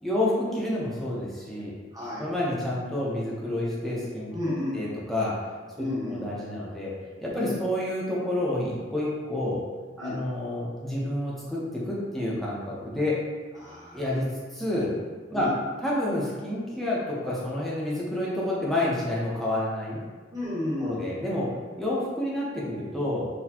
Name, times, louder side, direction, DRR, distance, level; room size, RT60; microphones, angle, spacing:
voice 1, 0.0-1.7 2.2-5.4 6.1-6.9 7.2-9.6 10.0-13.2 13.9-14.3 14.5-14.9 15.3-20.0 20.8-23.3, left 1 dB, ahead, -7 dB, 0.7 m, -29 dB
voice 2, 1.9-2.3 4.3-4.7 5.8-6.2 7.3-7.5 10.0-10.2 13.6-14.0 15.3-15.5 20.3-21.0, left 1 dB, 20° right, -8 dB, 0.9 m, -32 dB
4.1 x 2.2 x 2.8 m, 1.4 s
head